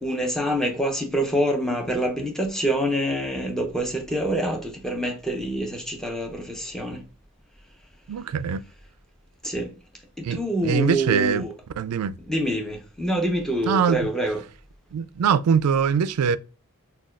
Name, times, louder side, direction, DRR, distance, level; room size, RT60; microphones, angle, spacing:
voice 1, 0.0-7.0 9.4-9.7 10.2-11.5 12.3-14.4, equal, 5° left, 0.7 m, -26 dB
voice 2, 8.1-8.6 10.2-11.4 11.8-12.2 13.6-14.0 14.9-16.4, right 7 dB, 85° right, 0.3 m, -22 dB
6.3 x 2.3 x 2.3 m
head